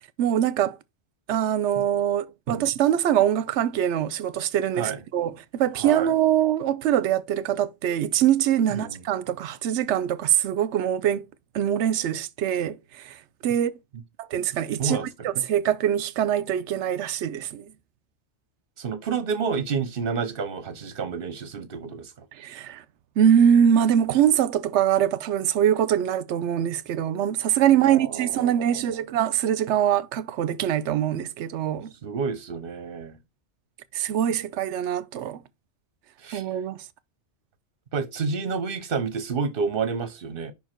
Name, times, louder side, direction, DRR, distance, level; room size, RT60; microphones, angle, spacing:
voice 1, 0.2-0.8 1.3-11.3 11.5-13.2 13.4-13.8 14.2-17.7 22.3-22.8 23.2-31.9 33.9-35.4 36.3-36.8, right 10 dB, 75° right, 0.9 m, -23 dB
voice 2, 5.7-6.1 8.7-9.0 14.8-15.0 18.8-22.1 27.7-29.0 32.0-33.2 36.2-36.4 37.9-40.5, right 5 dB, 55° right, 1.0 m, -29 dB
5.5 x 4.6 x 4.4 m
omnidirectional pair, 1.2 m